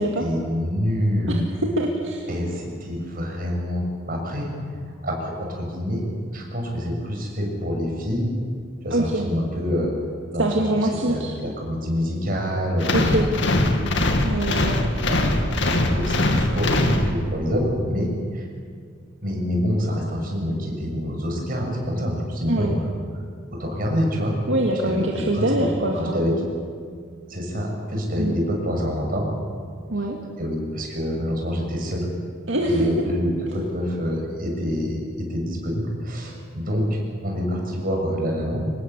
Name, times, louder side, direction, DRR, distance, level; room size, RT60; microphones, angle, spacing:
voice 1, 0.0-1.5 2.3-4.5 5.0-6.0 6.3-8.3 8.8-9.9 10.3-14.1 15.1-15.3 15.5-15.6 15.9-18.5 19.2-22.9 23.5-24.3 24.8-25.7 25.9-26.3 27.3-29.3 30.4-32.1 32.7-38.7, equal, 45° right, 0 dB, 6.6 m, -26 dB
voice 2, 1.8-2.2 8.9-9.3 10.4-11.3 12.9-13.3 14.2-14.8 22.5-22.7 24.5-26.4 28.2-28.3 29.9-30.2 32.5-32.9, right 1 dB, 65° right, -1 dB, 2.3 m, -24 dB
sound 1, 12.8-17.5, left 1 dB, 65° left, 2.3 m, -22 dB
25.0 x 19.5 x 8.3 m, 2.1 s
head